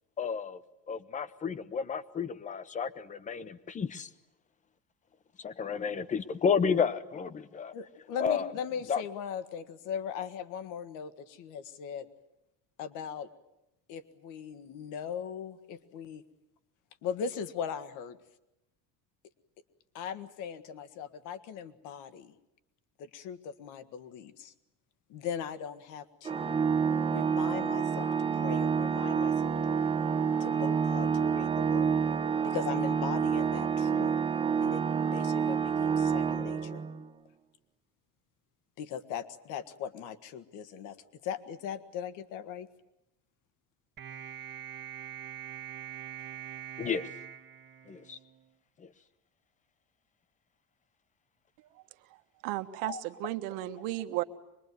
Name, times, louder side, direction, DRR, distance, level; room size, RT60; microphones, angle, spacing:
voice 1, 0.2-0.6 0.9-4.1 5.4-7.7 8.2-8.5 8.9-9.0 46.8-47.1 47.9-48.2 48.8-48.9 52.8-53.0, left 6 dB, 25° left, 15 dB, 0.9 m, -31 dB
voice 2, 7.7-12.1 12.8-13.3 13.9-16.2 17.0-18.2 19.9-22.3 23.0-24.5 25.1-26.6 27.1-29.8 30.4-32.0 32.4-34.2 34.6-34.8 35.1-36.8 38.8-41.0 41.2-42.7, left 7 dB, 70° left, 12 dB, 1.7 m, -39 dB
Organ, 26.2-37.1, right 6 dB, 15° right, 0.9 m, -28 dB
sound 1, 44.0-48.5, right 9 dB, 35° right, 1.1 m, -43 dB
voice 3, 52.4-54.2, right 16 dB, 90° right, 8 dB, 1.5 m, -34 dB
24.5 x 21.5 x 9.5 m, 0.86 s
cardioid pair, 165°, 33 cm